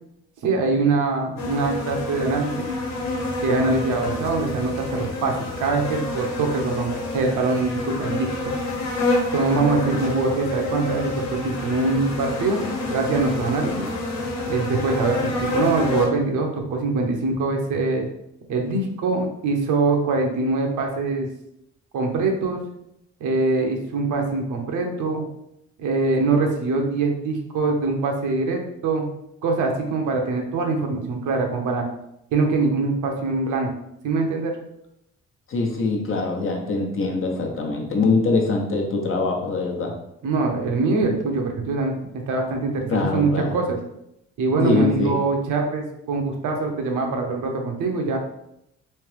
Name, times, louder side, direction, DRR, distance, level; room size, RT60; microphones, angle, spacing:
voice 1, 0.4-2.6 3.4-8.5 9.3-12.6 12.9-13.9 14.5-18.1 18.5-21.3 21.9-22.6 23.2-25.3 25.8-29.1 29.4-31.9 32.3-33.7 34.0-34.5 40.2-41.9 42.3-43.8 44.4-48.2, right 3 dB, 80° right, 2 dB, 0.9 m, -23 dB
sound 1, 1.4-16.1, left 2 dB, 60° left, 1.2 m, -28 dB
voice 2, 35.5-39.9 42.9-43.5 44.6-45.2, left 3 dB, 45° left, 1 dB, 0.8 m, -23 dB
3.3 x 2.9 x 3.2 m, 0.79 s
cardioid pair, 90°, 30 cm